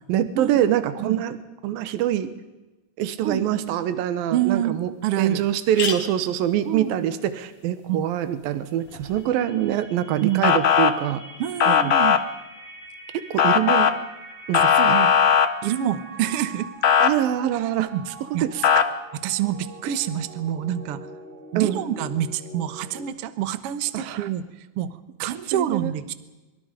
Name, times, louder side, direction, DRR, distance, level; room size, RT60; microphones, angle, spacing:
voice 1, 0.1-1.4 1.6-2.3 3.0-4.9 5.2-11.2 11.7-11.9 13.3-13.9 14.5-15.0 17.0-18.6 21.6-21.8 23.9-24.3 25.5-25.9, right 11 dB, 80° right, 11 dB, 2.9 m, -24 dB
sound 1, 4.2-4.3 4.7-4.8 5.1-5.2 5.5-9.3, left 5 dB, 70° left, 4.4 m, -37 dB
voice 2, 4.3-5.4 6.6-6.9 7.9-8.0 10.2-10.5 11.4-12.2 14.5-15.1 15.6-16.7 17.5-17.6 17.9-18.0 18.3-18.5 19.2-21.0 21.5-24.4 24.8-26.1, right 11 dB, 60° right, 12 dB, 1.5 m, -27 dB
sound 2, 8.8-23.0, right 2 dB, 10° left, 7.3 m, -43 dB
Motor vehicle (road) / Siren, 10.4-10.9 11.6-12.2 13.4-13.9 14.5-15.5 16.8-17.1 18.6-18.8, left 8 dB, 90° left, 1.1 m, -17 dB
25.0 x 24.0 x 5.2 m, 1.1 s
omnidirectional pair, 4.1 m